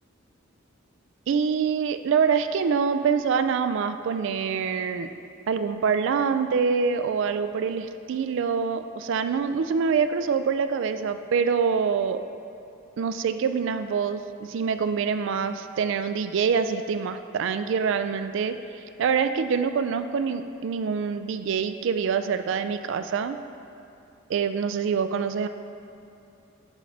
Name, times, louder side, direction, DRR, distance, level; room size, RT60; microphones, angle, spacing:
voice 1, 1.3-5.1 5.5-12.2 13.0-23.4 24.3-25.5, right 6 dB, 65° right, 10 dB, 0.3 m, -25 dB
11.0 x 3.9 x 3.3 m, 2.8 s
head